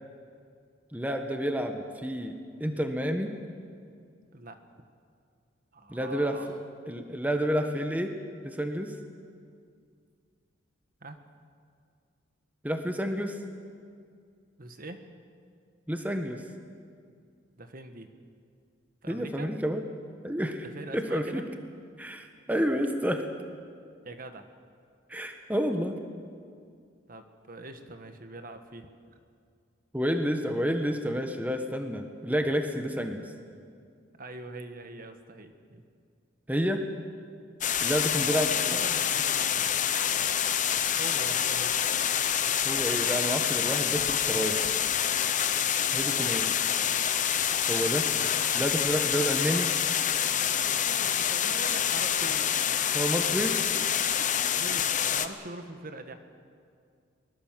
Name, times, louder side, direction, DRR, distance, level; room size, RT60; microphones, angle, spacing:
voice 1, 0.9-3.3 5.9-6.4 6.9-8.1 8.4-8.9 12.6-13.4 15.9-16.4 19.1-19.8 20.2-20.6 20.9-21.4 22.0-23.2 25.1-26.0 29.9-33.2 36.5-36.8 37.8-38.8 42.6-44.7 45.9-46.5 47.7-48.1 48.5-49.7 52.9-53.6, equal, 10° right, 5 dB, 1.3 m, -29 dB
voice 2, 5.7-6.5 11.0-11.2 14.6-15.0 17.6-18.1 19.0-19.5 20.6-21.4 24.0-24.5 27.1-28.9 34.1-35.8 37.7-39.7 41.0-41.8 45.9-46.5 49.1-49.2 50.7-52.5 54.5-56.1, right 2 dB, 50° right, 7 dB, 1.6 m, -43 dB
sound 1, 37.6-55.3, left 9 dB, 40° left, 0.9 m, -27 dB
23.5 x 20.5 x 7.6 m, 2.2 s
head